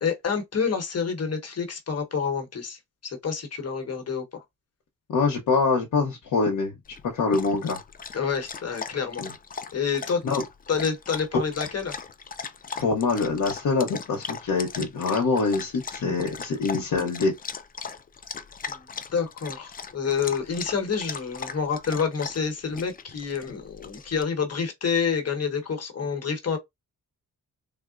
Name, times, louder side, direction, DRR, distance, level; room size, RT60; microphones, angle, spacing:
voice 1, 0.0-4.4 8.1-9.2 9.7-10.2 10.7-11.9 18.7-18.9 19.1-26.6, left 6 dB, 50° left, 1.0 m, -28 dB
voice 2, 5.1-6.7 7.0-7.8 9.2-9.3 10.2-10.4 12.8-17.3, left 4 dB, 75° left, 0.8 m, -24 dB
Dog, 6.8-24.2, left 5 dB, 30° left, 0.3 m, -39 dB
3.6 x 2.1 x 2.4 m
cardioid pair, 95°, 32 cm